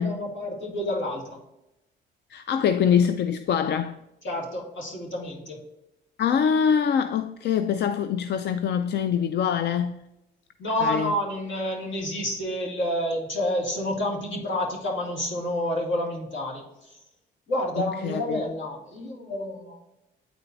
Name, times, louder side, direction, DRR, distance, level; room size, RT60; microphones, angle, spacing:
voice 1, 0.0-1.4 4.2-5.6 10.6-17.0 17.5-19.8, left 1 dB, 75° left, 2.2 m, -29 dB
voice 2, 2.3-4.0 6.2-10.0 10.8-11.1 17.8-18.4, left 7 dB, 60° left, 0.4 m, -24 dB
9.0 x 4.4 x 2.6 m
cardioid pair, 90°, 20 cm